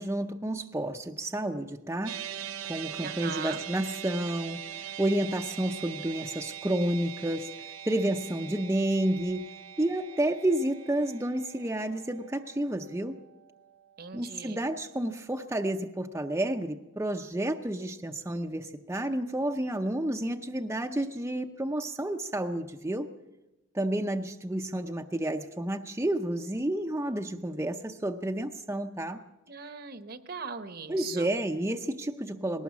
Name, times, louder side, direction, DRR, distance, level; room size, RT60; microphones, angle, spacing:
voice 1, 0.0-2.2 2.7-7.5 7.9-13.2 14.1-23.1 23.7-29.2 30.9-32.6, right 1 dB, 10° right, 3 dB, 0.6 m, -30 dB
sound 1, 2.1-14.5, right 10 dB, 80° right, 1.0 m, -42 dB
voice 2, 3.0-3.6 14.0-14.6 29.5-31.3, right 5 dB, 45° right, 11 dB, 1.0 m, -39 dB
20.0 x 18.5 x 7.1 m, 0.98 s
head